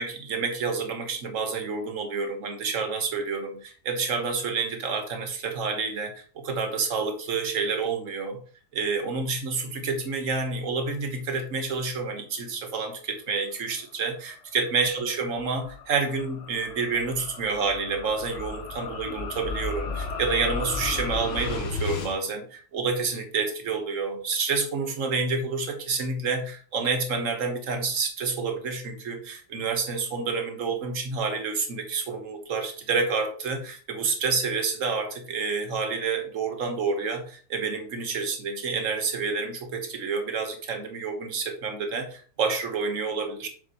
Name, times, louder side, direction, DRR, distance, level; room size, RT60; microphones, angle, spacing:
voice 1, 0.0-8.4 8.7-43.5, right 4 dB, 60° right, 5 dB, 1.6 m, -29 dB
sound 1, 14.3-22.1, left 4 dB, 55° left, 1.2 m, -34 dB
7.1 x 6.3 x 3.0 m, 0.42 s
omnidirectional pair, 1.6 m